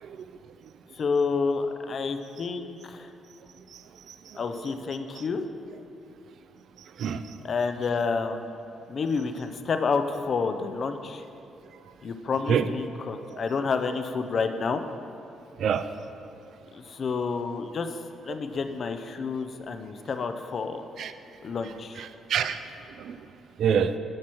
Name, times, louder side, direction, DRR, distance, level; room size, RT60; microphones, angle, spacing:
voice 1, 0.9-3.1 4.3-5.4 7.4-8.4 8.9-11.2 12.0-14.8 16.7-17.9 18.2-20.8 21.4-22.1, left 4 dB, 50° left, 8 dB, 0.5 m, -29 dB
voice 2, 15.6-15.9 21.0-21.1 22.0-22.6 23.0-23.2 23.6-23.9, right 8 dB, 70° right, 11 dB, 0.3 m, -26 dB
7.3 x 6.2 x 4.5 m, 2.8 s
cardioid pair, 90°, 0 cm